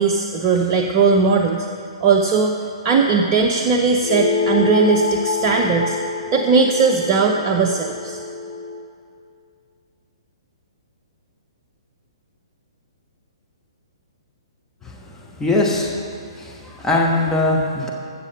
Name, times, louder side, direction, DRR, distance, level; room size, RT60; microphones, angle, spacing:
voice 1, 0.0-1.7 2.0-2.5 2.8-6.0 6.3-8.2, right 4 dB, 30° right, 2 dB, 0.7 m, -18 dB
sound 1, 4.0-8.8, left 4 dB, 55° left, 3.2 m, -26 dB
voice 2, 15.4-16.0 16.4-17.9, left 2 dB, 10° left, -1 dB, 1.1 m, -20 dB
14.5 x 7.4 x 5.5 m, 2.3 s
figure-of-eight pair, 125°, 3 cm